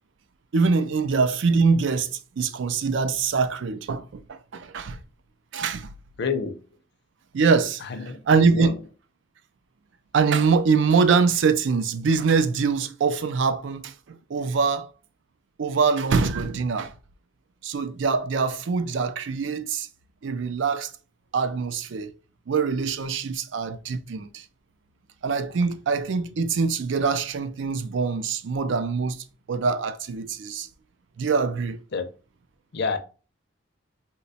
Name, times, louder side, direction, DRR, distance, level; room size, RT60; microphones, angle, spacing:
voice 1, 0.5-5.0 5.5-5.9 7.3-8.8 10.1-14.9 15.6-16.9 17.6-19.9 20.2-20.9 21.3-22.1 22.5-24.4 25.2-30.7 31.2-31.8, right 5 dB, 70° right, 0.4 m, -24 dB
voice 2, 6.2-6.6 7.8-8.2 8.5-8.7 31.9-32.1 32.7-33.0, left 5 dB, 60° left, 0.5 m, -27 dB
2.9 x 2.2 x 4.0 m
head